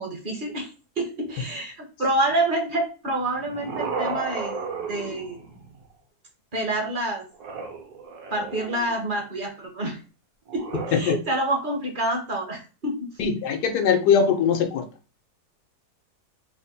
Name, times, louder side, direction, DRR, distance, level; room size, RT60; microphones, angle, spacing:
voice 1, 0.0-5.4 6.5-7.2 8.3-10.0 10.5-13.1, right 1 dB, 45° right, 2 dB, 0.7 m, -28 dB
sound 1, 3.2-5.8 7.3-9.1 10.5-11.0, right 5 dB, 70° right, 1.3 m, -34 dB
voice 2, 13.2-14.9, left 6 dB, 90° left, 5 dB, 1.2 m, -21 dB
3.4 x 2.1 x 4.0 m, 0.34 s
omnidirectional pair, 1.7 m